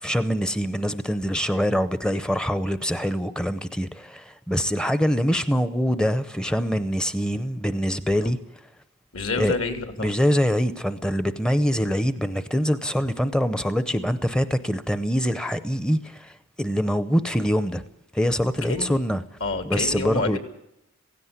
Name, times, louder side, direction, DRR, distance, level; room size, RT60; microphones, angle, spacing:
voice 1, 0.0-8.4 9.4-9.6 10.0-17.8 18.1-19.2 19.7-20.4, equal, 5° left, 0.7 m, -24 dB
voice 2, 9.1-10.1 18.7-19.0 19.4-20.4, left 3 dB, 70° left, 3.0 m, -28 dB
17.0 x 16.0 x 9.6 m
head